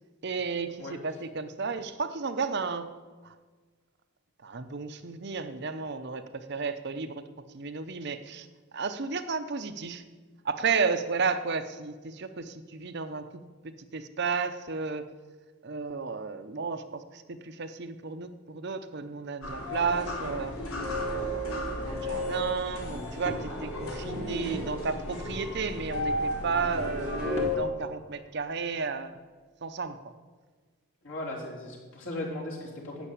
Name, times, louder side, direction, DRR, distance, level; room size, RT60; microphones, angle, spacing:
voice 1, 0.2-2.9 3.2-3.3 4.4-7.2 7.5-8.5 8.7-10.0 10.4-15.0 15.6-20.6 21.3-29.2 29.6-30.0, right 4 dB, 50° right, 9 dB, 0.7 m, -33 dB
sound 1, 19.4-27.6, left 1 dB, 80° left, 3.7 m, -33 dB
sound 2, 23.3-24.8 27.4-29.2, equal, 30° left, 1.5 m, -43 dB
voice 2, 31.0-33.1, left 1 dB, 60° left, -3 dB, 3.6 m, -37 dB
11.5 x 8.1 x 8.3 m, 1.4 s
head